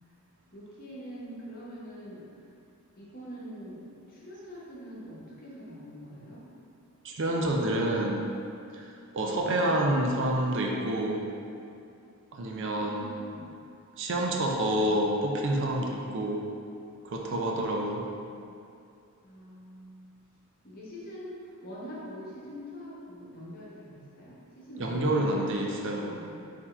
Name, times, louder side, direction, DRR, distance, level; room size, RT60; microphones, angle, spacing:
voice 1, 0.5-2.2 3.0-3.8 4.1-6.5 9.2-9.6 12.4-13.4 19.2-20.1 20.6-26.4, equal, 40° left, -7 dB, 1.0 m, -44 dB
voice 2, 7.0-8.2 8.7-8.9 9.1-11.3 12.3-13.2 14.0-16.4 17.0-18.0 24.8-26.1, right 1 dB, 55° right, 0 dB, 0.5 m, -28 dB
4.3 x 2.8 x 4.3 m, 2.5 s
head